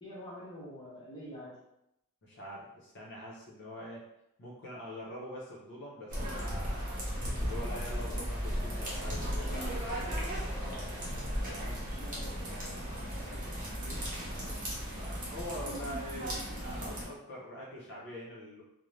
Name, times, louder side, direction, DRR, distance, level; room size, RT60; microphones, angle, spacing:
voice 1, 0.0-1.6 10.3-14.7, equal, 20° left, -7 dB, 0.8 m, -49 dB
voice 2, 2.2-4.0 4.4-6.8 7.2-10.4 11.4-11.8 14.9-18.6, equal, 55° left, -5 dB, 0.7 m, -44 dB
sound 1, 6.1-17.1, equal, 35° right, 0.8 m, -36 dB
2.6 x 2.1 x 3.1 m, 0.84 s
head